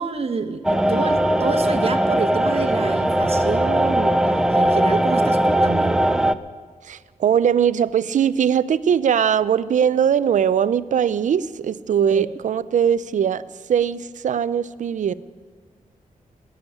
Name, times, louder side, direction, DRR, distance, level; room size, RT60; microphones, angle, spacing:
voice 1, 0.0-6.0 12.1-12.3, right 4 dB, 45° right, 7 dB, 1.1 m, -27 dB
sound 1, 0.6-6.3, right 1 dB, 5° right, 0.5 m, -19 dB
voice 2, 6.8-13.4 13.7-15.1, right 8 dB, 60° right, 16 dB, 0.5 m, -20 dB
19.0 x 7.2 x 9.9 m, 1.5 s
wide cardioid pair, 135°, 14 cm